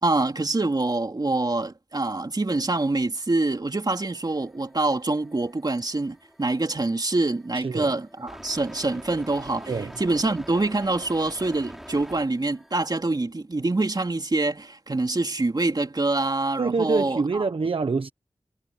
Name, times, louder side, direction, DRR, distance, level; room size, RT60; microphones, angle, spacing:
voice 1, 0.0-9.7 10.0-17.4, right 2 dB, 45° right, 3.3 m, -25 dB
sound 1, 3.9-12.8, equal, 5° right, 6.7 m, -46 dB
voice 2, 7.5-7.9 9.7-10.0 16.6-18.1, right 4 dB, 70° right, 1.2 m, -26 dB
wide cardioid pair, 55°, 10 cm